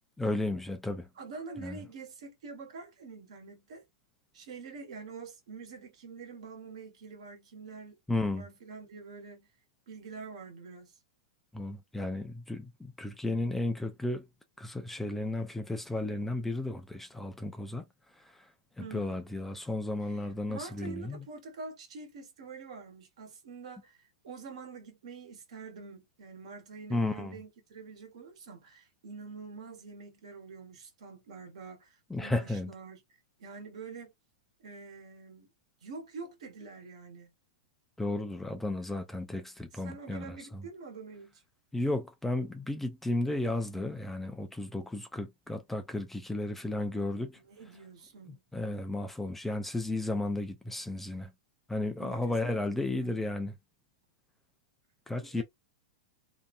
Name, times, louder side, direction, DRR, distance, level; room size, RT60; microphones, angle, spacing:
voice 1, 0.2-1.1 1.6-1.8 8.1-8.5 11.5-14.3 14.6-17.9 18.2-18.4 18.8-21.2 26.9-27.4 32.1-32.7 38.0-40.3 41.7-47.4 48.5-51.3 51.7-53.5 55.1-55.4, left 2 dB, 5° left, 0.6 m, -33 dB
voice 2, 1.1-3.8 4.3-8.0 8.3-9.5 9.9-10.9 18.8-19.2 20.0-33.0 33.4-34.1 34.6-35.5 35.8-37.3 39.7-41.4 47.4-48.4 52.0-53.3 55.2-55.4, right 4 dB, 65° right, 1.3 m, -46 dB
2.8 x 2.5 x 2.4 m
hypercardioid pair, 105°, 4 cm